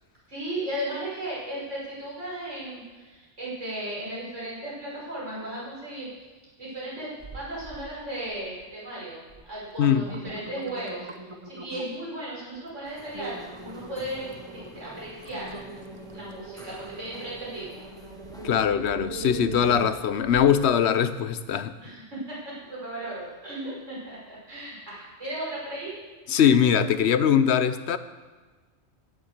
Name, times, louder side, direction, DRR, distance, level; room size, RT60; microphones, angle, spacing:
voice 1, 0.3-6.1 6.6-11.1 11.4-15.6 16.1-17.8 21.8-26.0, right 1 dB, 70° right, -7 dB, 5.8 m, -36 dB
sound 1, 7.2-7.9 8.2-8.7 9.3-9.4 9.8-12.1 12.6-12.7 13.1-20.6 21.1-21.2, right 3 dB, 30° right, 0.8 m, -41 dB
sound 2, 12.8-18.5, equal, 5° left, 1.3 m, -49 dB
voice 2, 18.4-21.7 26.3-28.0, left 8 dB, 65° left, 12 dB, 0.9 m, -21 dB
15.5 x 7.4 x 6.5 m, 1.3 s
omnidirectional pair, 1.3 m